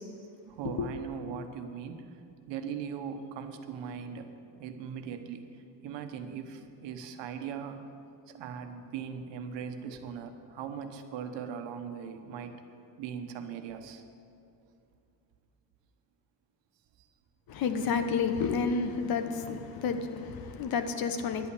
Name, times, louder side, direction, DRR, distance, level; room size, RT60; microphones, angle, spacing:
voice 1, 0.1-7.8 8.3-12.5 13.0-14.0 17.0-17.1, right 7 dB, 80° right, 7 dB, 1.1 m, -40 dB
voice 2, 17.5-21.5, left 5 dB, 55° left, 8 dB, 0.9 m, -30 dB
10.5 x 8.5 x 8.4 m, 2.5 s
cardioid pair, 175°, 43 cm